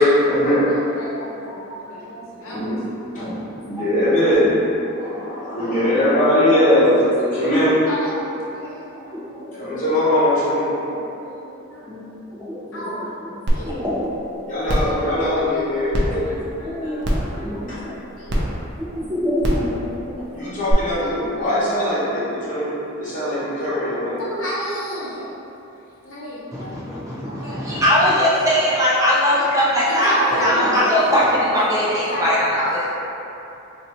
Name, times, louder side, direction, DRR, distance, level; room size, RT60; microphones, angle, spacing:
voice 1, 0.0-0.7 1.7-1.8 2.4-2.8 3.1-3.4 3.6-4.6 4.9-7.8 9.5-10.8 14.4-16.4 17.7-17.8 20.3-24.2 30.2-30.8, left 1 dB, 40° left, -10 dB, 1.0 m, -20 dB
voice 2, 0.7-1.3 1.9-2.7 4.2-4.4 5.6-6.8 7.9-9.0 9.3-9.6 10.6-11.4 11.7-11.9 12.7-13.1 13.4-13.7 14.6-14.9 16.0-17.8 18.2-18.4 20.2-20.3 24.2-25.3 26.0-27.6 28.6-28.8 29.8-31.0 32.1-32.8, equal, 85° left, -8 dB, 0.9 m, -31 dB
voice 3, 8.9-9.5 11.9-12.0 12.3-13.3 13.6-14.1 16.6-17.9 18.8-19.7 20.0-20.3 26.5-30.1 30.4-32.9, equal, 15° right, -9 dB, 0.6 m, -21 dB
sound 1, 13.5-13.6 14.0-14.1 14.7-14.9 15.9-16.0 17.0-17.3 18.3-18.4 19.4-19.6 20.7-20.8, equal, 60° right, 0.6 m, -20 dB
2.7 x 2.4 x 4.1 m, 2.9 s
head